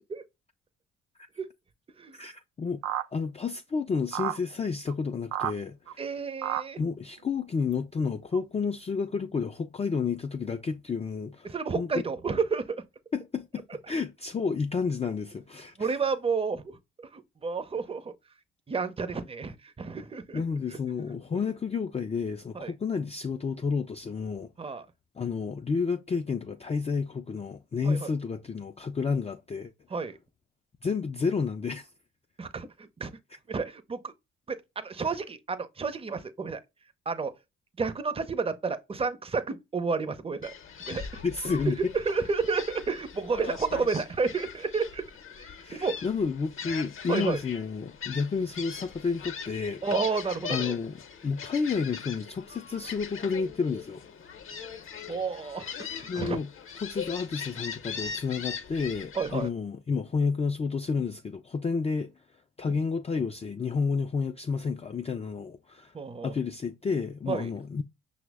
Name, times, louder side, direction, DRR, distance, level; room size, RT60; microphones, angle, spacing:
voice 1, 2.1-2.8 3.1-6.0 6.8-11.5 11.7-11.9 13.1-16.0 20.3-24.5 25.2-29.7 30.8-31.9 41.2-41.9 45.6-49.8 50.5-51.0 51.2-54.0 56.1-56.5 56.8-62.1 62.6-65.9 66.2-67.8, left 5 dB, 20° left, 0.4 m, -30 dB
sound 1, 2.8-3.1 4.1-4.4 4.9-5.0 5.3-5.5 5.9-6.0 6.4-6.6 7.7-7.8 8.3-8.4, right 12 dB, 65° right, 0.5 m, -30 dB
voice 2, 6.0-6.8 11.4-12.8 15.8-16.6 17.0-18.1 18.7-20.4 22.5-22.7 24.6-24.9 27.8-28.1 29.9-30.2 32.4-33.1 33.5-34.1 34.5-36.6 37.1-37.3 37.8-40.5 40.8-41.2 41.8-45.0 45.4-45.9 47.1-47.4 49.8-50.8 55.1-56.4 59.1-59.5 65.9-66.3 67.3-67.5, right 5 dB, 20° right, 0.6 m, -31 dB
Gull seagull, 40.4-59.5, left 6 dB, 45° left, 0.8 m, -40 dB
5.7 x 2.1 x 3.4 m
supercardioid pair, 55°, 29 cm